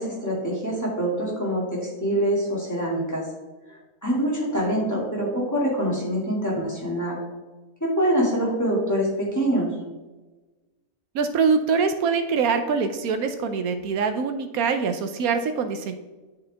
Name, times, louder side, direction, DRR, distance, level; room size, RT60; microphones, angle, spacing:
voice 1, 0.0-3.2 4.0-7.2 7.8-9.7, equal, 10° left, -5 dB, 2.3 m, -25 dB
voice 2, 11.1-16.0, right 5 dB, 80° right, 8 dB, 1.1 m, -24 dB
9.7 x 5.5 x 3.4 m, 1.2 s
omnidirectional pair, 1.5 m